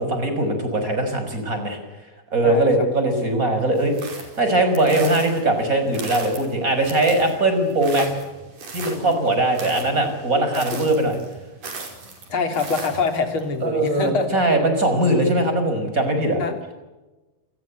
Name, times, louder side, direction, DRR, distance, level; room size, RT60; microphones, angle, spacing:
voice 1, 0.0-1.8 2.3-8.1 8.7-11.2 13.6-16.4, right 2 dB, 25° right, 7 dB, 5.8 m, -21 dB
voice 2, 2.4-2.9 9.0-9.2 10.6-10.9 12.3-14.4 16.4-16.6, left 4 dB, 40° left, 6 dB, 3.7 m, -25 dB
sound 1, 3.8-13.4, right 3 dB, 80° right, 6.9 m, -38 dB
29.5 x 21.5 x 8.5 m, 1.1 s
omnidirectional pair, 3.8 m